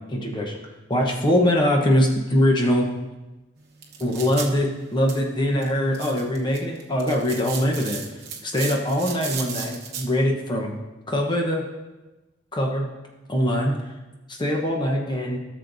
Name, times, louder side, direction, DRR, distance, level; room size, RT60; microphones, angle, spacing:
voice 1, 0.1-0.5 0.9-2.9 4.0-8.0 8.4-10.8 11.1-11.6 12.5-12.9 13.3-13.7 14.4-15.4, equal, 25° left, 0 dB, 1.0 m, -22 dB
sound 1, 3.6-10.0, right 6 dB, 55° right, 1.0 m, -37 dB
14.0 x 6.5 x 2.7 m, 1.1 s
head